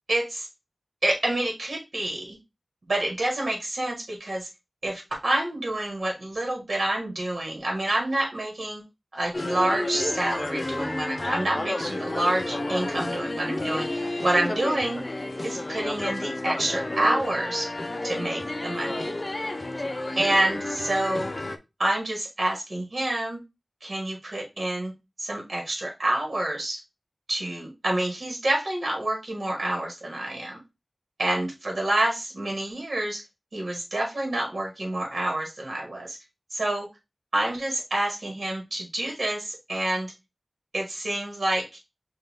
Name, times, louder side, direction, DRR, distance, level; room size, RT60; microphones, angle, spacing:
voice 1, 0.1-0.5 1.0-2.4 2.9-4.5 4.8-8.8 9.1-15.0 15.4-17.7 18.0-19.2 20.2-21.3 21.8-23.4 23.8-24.9 25.2-26.8 27.3-30.6 31.2-33.2 33.5-36.2 36.5-36.9 37.3-40.1 40.7-41.7, right 1 dB, 65° right, 1 dB, 1.7 m, -28 dB
sound 1, 9.3-21.6, left 2 dB, 40° left, 0.6 m, -31 dB
5.7 x 2.5 x 3.5 m, 0.24 s
wide cardioid pair, 60°, 0 cm